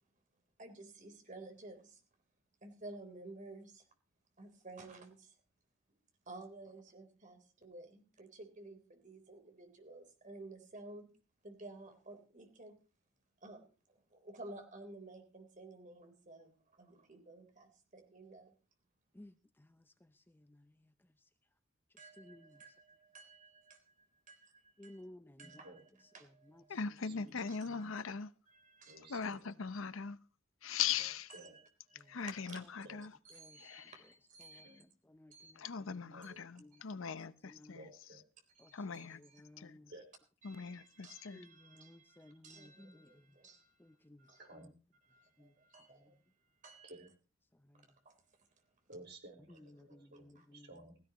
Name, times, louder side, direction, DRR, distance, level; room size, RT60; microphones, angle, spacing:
voice 1, 0.6-2.0 2.6-3.9 4.4-5.4 6.3-11.1 11.4-12.8 13.4-18.5 22.0-25.0 25.4-25.8 26.1-26.8 27.5-28.1 28.5-29.1 31.3-31.6 32.0-32.7 33.3-34.8 35.3-35.5 36.7-36.9 38.5-39.5 40.4-44.5 45.0-47.1 47.7-48.7 49.8-49.9 50.4-50.5, right 2 dB, 40° right, 3.7 m, -54 dB
voice 2, 19.1-20.7 22.2-22.6 24.8-25.5 26.7-26.8 27.1-27.2 32.0-32.1 33.4-33.6 34.4-34.7 35.1-36.2 36.6-37.2 37.4-37.8 38.6-39.9 41.3-43.1 43.8-44.3 45.4-45.5 47.7-47.8 49.6-50.7, left 1 dB, 10° left, 0.6 m, -58 dB
voice 3, 25.4-25.8 27.0-27.5 28.9-29.5 31.0-31.6 32.8-33.1 34.6-34.9 36.1-36.4 37.7-38.2 39.9-40.0 44.4-44.8 46.8-47.1 48.9-51.0, right 2 dB, 60° right, 4.6 m, -55 dB
voice 4, 26.7-28.3 29.1-30.2 30.6-31.3 32.1-33.1 33.6-33.9 35.6-37.8 38.7-39.2 39.6-39.8 40.4-41.4, left 7 dB, 80° left, 0.7 m, -40 dB
16.5 x 16.5 x 3.0 m
head